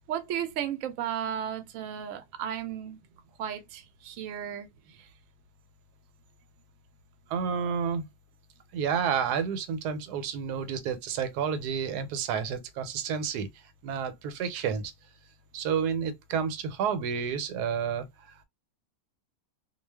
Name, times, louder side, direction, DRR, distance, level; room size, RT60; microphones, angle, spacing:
voice 1, 0.1-3.0 3.4-5.1, right 9 dB, 65° right, 0.8 m, -34 dB
voice 2, 7.3-8.1 8.7-14.9 15.5-18.4, right 7 dB, 85° right, 1.1 m, -30 dB
2.4 x 2.3 x 3.3 m
omnidirectional pair, 1.7 m